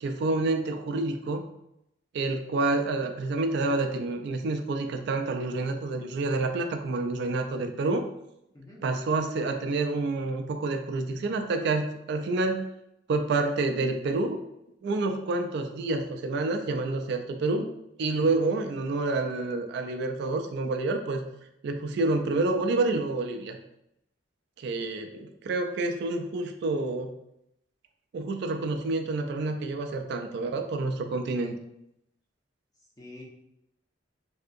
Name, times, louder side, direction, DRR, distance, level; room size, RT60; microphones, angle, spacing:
voice 1, 0.0-1.5 2.1-8.0 8.8-12.6 13.1-14.4 14.8-17.7 18.0-21.2 21.6-23.6 24.6-27.1 28.1-31.6, right 3 dB, 65° right, 6 dB, 0.3 m, -28 dB
voice 2, 18.1-18.8 33.0-33.2, left 1 dB, 20° left, -4 dB, 0.8 m, -47 dB
3.5 x 2.7 x 2.4 m, 0.81 s
head